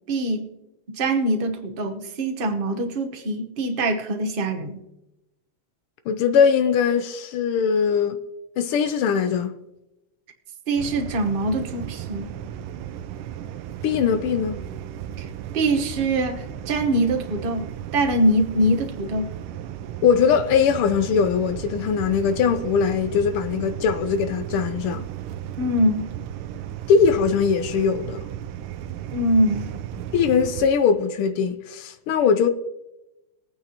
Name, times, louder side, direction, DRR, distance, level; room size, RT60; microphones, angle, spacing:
voice 1, 0.1-0.5 1.0-4.8 10.7-12.3 15.2-15.3 15.5-17.6 17.9-19.3 25.6-26.1 29.1-29.7, right 1 dB, 35° right, 1.0 m, -23 dB
voice 2, 6.1-8.2 8.6-9.5 13.8-14.6 20.0-25.0 26.9-28.2 30.1-32.5, left 6 dB, 85° left, 1.6 m, -21 dB
sound 1, 10.8-30.7, right 11 dB, 85° right, 1.5 m, -35 dB
22.0 x 9.2 x 2.9 m
omnidirectional pair, 2.4 m